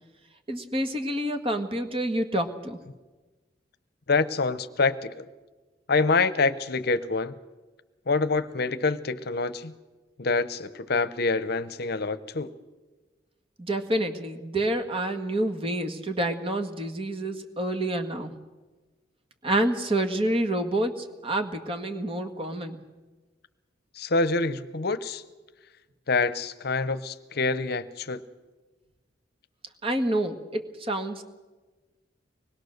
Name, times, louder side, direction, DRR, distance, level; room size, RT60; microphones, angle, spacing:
voice 1, 0.5-2.8 13.6-18.3 19.4-22.8 29.8-31.2, right 1 dB, 30° right, 6 dB, 1.7 m, -28 dB
voice 2, 4.1-5.3 5.9-7.3 8.1-9.7 10.2-12.5 24.0-25.2 26.1-28.2, left 3 dB, 60° left, 14 dB, 0.8 m, -26 dB
25.0 x 20.0 x 6.6 m, 1.2 s
head